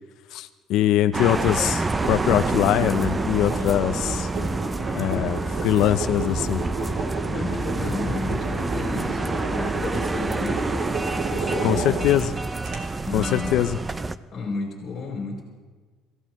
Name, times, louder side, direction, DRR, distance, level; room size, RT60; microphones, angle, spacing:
voice 1, 0.3-4.3 4.9-6.6 11.6-12.3 13.1-13.8, left 12 dB, 55° left, 9 dB, 0.5 m, -22 dB
sound 1, 1.1-14.2, right 3 dB, 10° right, 0.4 m, -28 dB
sound 2, 1.8-12.3 12.6-12.8, right 3 dB, 50° right, 2.9 m, -32 dB
voice 2, 7.3-10.6 11.1-12.0 13.0-13.6 14.3-15.4, left 3 dB, 30° left, -1 dB, 4.3 m, -32 dB
25.5 x 16.0 x 3.1 m, 1.4 s
cardioid pair, 180°, 0 cm